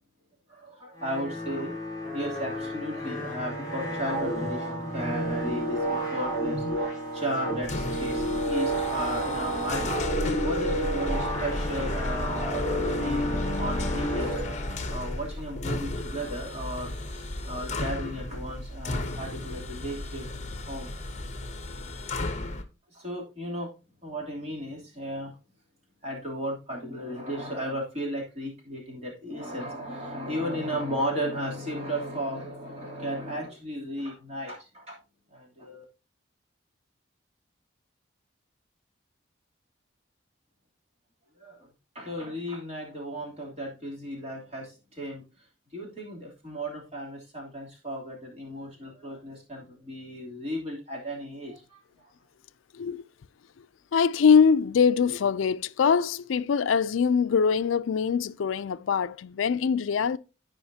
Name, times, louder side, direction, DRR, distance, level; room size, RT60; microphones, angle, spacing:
voice 1, 0.5-1.7 2.1-9.9 10.4-13.2 13.6-20.3 20.7-20.9 22.9-23.7 24.0-25.4 26.0-35.0 35.3-35.8 41.4-41.7 41.9-45.2 45.7-51.8, equal, 30° right, 2.9 m, -35 dB
sound 1, 1.0-15.1, right 1 dB, 20° left, 4.7 m, -31 dB
sound 2, 7.6-22.6, left 2 dB, 35° left, 0.9 m, -33 dB
voice 2, 53.9-60.2, left 6 dB, 85° left, 0.4 m, -23 dB
15.0 x 5.1 x 2.7 m
head